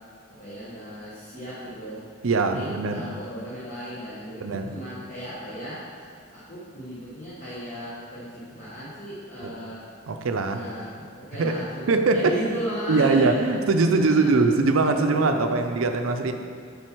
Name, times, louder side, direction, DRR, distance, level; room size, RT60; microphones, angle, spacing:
voice 1, 0.3-2.0 2.3-5.8 6.3-9.8 10.3-13.5 13.8-14.4 14.8-15.6, equal, 35° left, -10 dB, 1.2 m, -36 dB
voice 2, 2.2-3.0 4.4-4.7 9.4-9.5 10.1-10.6 11.4-11.6 11.9-12.4 12.9-16.3, right 3 dB, 70° right, 6 dB, 0.5 m, -22 dB
7.6 x 5.6 x 4.5 m, 2.4 s
head